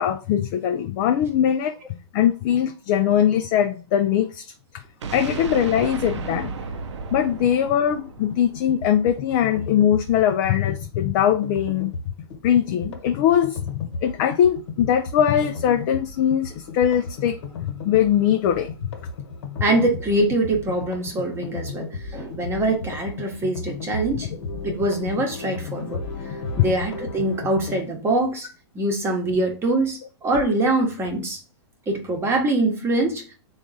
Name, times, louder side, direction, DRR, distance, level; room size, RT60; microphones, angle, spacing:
voice 1, 0.0-1.8 2.1-4.4 5.1-6.5 7.1-11.9 12.4-17.4 17.6-18.7, left 9 dB, 40° left, 0.4 m, -21 dB
sound 1, 5.0-9.0, right 4 dB, 80° right, 0.6 m, -33 dB
sound 2, 8.3-27.8, left 4 dB, 65° left, 1.3 m, -35 dB
voice 2, 19.6-24.3 24.6-26.0 26.6-28.5 28.7-31.4 31.9-33.3, right 2 dB, 15° right, 1.0 m, -23 dB
3.6 x 2.4 x 4.0 m
hypercardioid pair, 135°, 15 cm